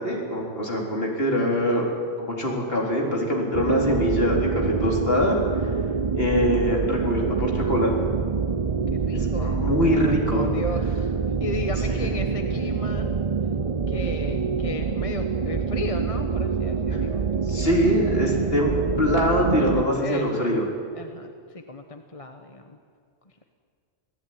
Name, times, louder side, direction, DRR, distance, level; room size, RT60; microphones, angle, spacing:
voice 1, 0.0-1.9 2.2-5.4 6.1-7.9 9.1-10.4 12.0-12.1 17.5-20.6, equal, 50° left, -1 dB, 4.3 m, -23 dB
sound 1, 3.5-19.9, right 5 dB, 35° right, 0.7 m, -26 dB
voice 2, 8.9-11.1 11.4-13.1 13.9-17.8 18.1-18.3 19.8-20.5 20.9-22.8, left 2 dB, 30° left, 5 dB, 1.2 m, -35 dB
27.5 x 17.5 x 9.4 m, 2.1 s
omnidirectional pair, 1.3 m